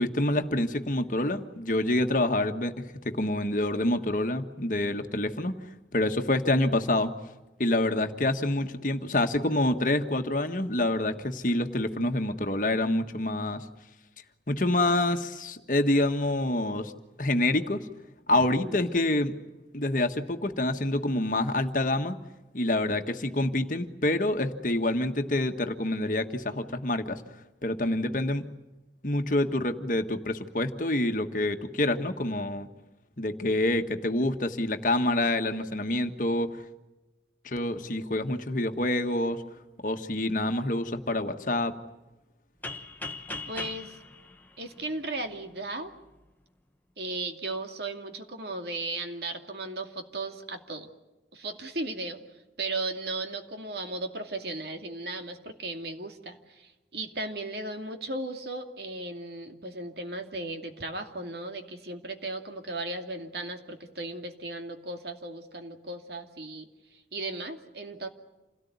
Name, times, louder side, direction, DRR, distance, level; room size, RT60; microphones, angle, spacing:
voice 1, 0.0-5.5 5.9-7.1 7.6-13.6 14.5-16.9 17.2-17.9 18.3-19.4 19.7-22.1 22.5-27.2 27.6-28.5 29.0-32.7 33.2-36.6 37.4-39.4 39.8-41.7, left 1 dB, 45° left, 6 dB, 1.5 m, -27 dB
voice 2, 18.3-18.8 43.5-44.0 44.6-45.9 47.0-50.9 51.3-52.2 52.6-66.7 66.9-68.1, right 2 dB, 65° right, 5 dB, 2.5 m, -36 dB
sound 1, 42.6-45.4, left 2 dB, 10° left, 1.2 m, -39 dB
28.0 x 18.0 x 9.5 m, 1.0 s
head